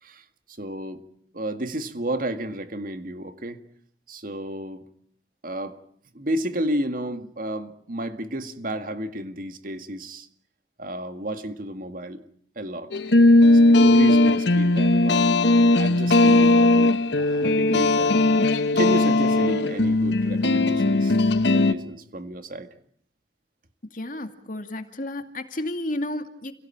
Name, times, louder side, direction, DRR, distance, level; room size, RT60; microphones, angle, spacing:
voice 1, 0.0-1.0 1.3-3.6 4.1-4.8 5.4-5.8 6.1-10.3 10.8-12.2 12.6-13.0 13.5-15.3 15.8-18.2 18.8-22.7, right 1 dB, 50° right, 8 dB, 2.0 m, -32 dB
sound 1, 12.9-21.7, left 2 dB, 75° left, 1.1 m, -18 dB
voice 2, 23.9-26.5, left 1 dB, 45° left, 7 dB, 2.3 m, -32 dB
29.5 x 17.5 x 8.9 m, 0.64 s
head